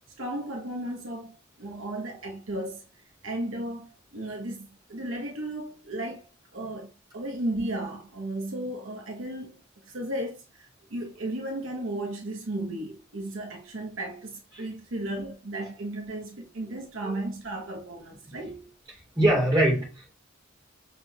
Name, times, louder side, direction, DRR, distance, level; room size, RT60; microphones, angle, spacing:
voice 1, 0.2-2.8 3.2-6.3 6.5-18.7, right 1 dB, 70° right, 1.0 m, -35 dB
voice 2, 19.1-20.1, right 1 dB, 20° right, 2.9 m, -22 dB
6.0 x 3.7 x 2.4 m
head